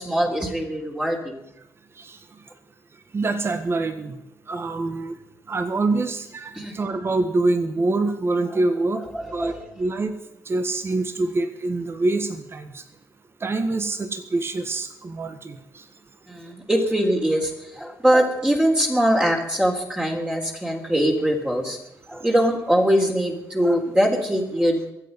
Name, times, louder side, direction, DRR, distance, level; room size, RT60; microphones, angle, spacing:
voice 1, 0.0-1.4 6.5-6.7 9.1-9.6 16.3-21.8 22.1-24.9, equal, 10° right, -1 dB, 3.5 m, -22 dB
voice 2, 3.1-4.2 4.5-5.2 5.5-9.0 9.3-10.2 10.4-12.8 13.4-15.6, right 2 dB, 35° right, 9 dB, 1.6 m, -25 dB
23.5 x 8.2 x 5.4 m, 0.85 s
supercardioid pair, 70°, 7 cm